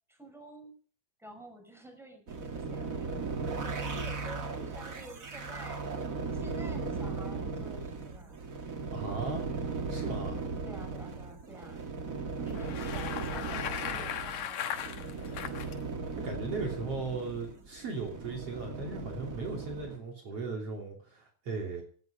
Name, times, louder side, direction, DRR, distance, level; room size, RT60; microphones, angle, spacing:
voice 1, 0.1-0.8 1.2-5.8 6.3-8.5 10.6-15.6, right 1 dB, ahead, 4 dB, 5.7 m, -49 dB
sound 1, 2.3-20.0, right 4 dB, 35° right, 1.7 m, -37 dB
voice 2, 8.9-9.5 9.9-10.4 16.2-21.8, right 3 dB, 50° right, 1 dB, 4.0 m, -37 dB
Bicycle, 12.5-15.7, left 9 dB, 70° left, 2.5 m, -37 dB
18.0 x 12.0 x 5.3 m, 0.43 s
omnidirectional pair, 3.4 m